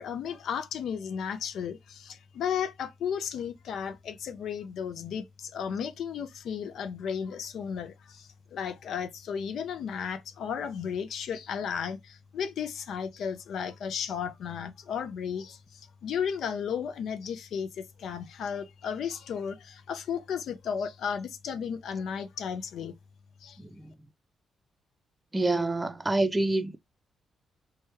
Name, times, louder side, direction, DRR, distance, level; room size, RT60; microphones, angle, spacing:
voice 1, 0.0-23.0 23.4-23.6, left 7 dB, 70° left, 0.4 m, -34 dB
voice 2, 25.3-26.8, right 2 dB, 20° right, 0.5 m, -26 dB
3.2 x 2.2 x 3.0 m
supercardioid pair, 50°, 0 cm